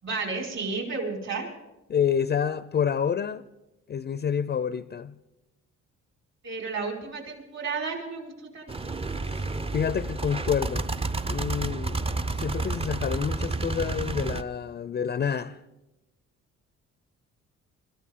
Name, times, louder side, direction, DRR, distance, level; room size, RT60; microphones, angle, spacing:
voice 1, 0.0-1.5 6.4-8.7, right 4 dB, 60° right, 5.1 m, -32 dB
voice 2, 1.9-3.4 3.9-5.1 9.2-10.9 11.2-12.1 12.3-15.6, left 7 dB, 35° left, 0.5 m, -28 dB
sound 1, 8.7-14.4, right 3 dB, 20° right, 0.6 m, -30 dB
23.5 x 14.0 x 3.7 m
cardioid pair, 90°, 30 cm